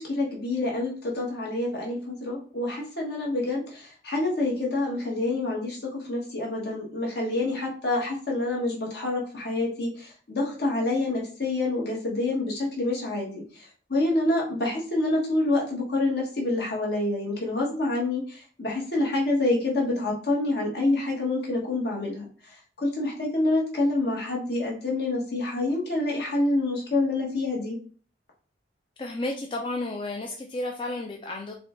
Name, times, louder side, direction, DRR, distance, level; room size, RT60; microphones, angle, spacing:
voice 1, 0.0-13.4 13.9-22.2 22.8-27.8, left 2 dB, 60° left, -2 dB, 1.3 m, -27 dB
voice 2, 29.0-31.5, left 2 dB, 25° left, 1 dB, 0.4 m, -32 dB
4.9 x 2.3 x 3.6 m, 0.42 s
head